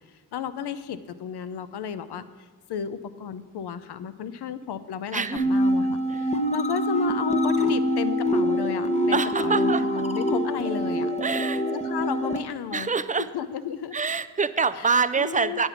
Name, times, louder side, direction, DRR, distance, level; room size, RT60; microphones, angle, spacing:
voice 1, 0.3-11.1 11.7-12.9 13.2-14.0 14.7-14.9 15.2-15.6, left 8 dB, 75° left, 13 dB, 0.6 m, -33 dB
voice 2, 5.1-5.6 6.1-6.2 9.1-9.8 11.2-11.6 12.7-13.3 13.9-15.7, right 5 dB, 20° right, 12 dB, 0.5 m, -25 dB
sound 1, 5.4-12.4, equal, 15° left, 0.9 m, -25 dB
9.1 x 5.3 x 7.0 m, 1.4 s
supercardioid pair, 40°, 40 cm